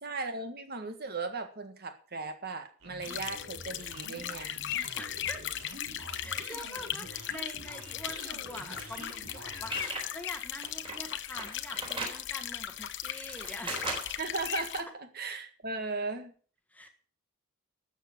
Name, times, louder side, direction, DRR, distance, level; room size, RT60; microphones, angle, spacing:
voice 1, 0.0-4.6 14.2-16.3 16.8-16.9, right 3 dB, 45° right, 8 dB, 1.7 m, -37 dB
sound 1, 2.8-9.9, right 2 dB, 80° right, 3.5 m, -48 dB
sound 2, 3.0-14.8, left 11 dB, 55° left, 0.9 m, -38 dB
voice 2, 5.0-5.5 6.2-13.9 16.7-16.9, left 1 dB, 5° left, 5 dB, 1.5 m, -45 dB
sound 3, 8.5-10.1 10.5-12.2 12.8-14.3, right 2 dB, 25° right, 3.9 m, -39 dB
12.5 x 7.2 x 7.6 m, 0.42 s
head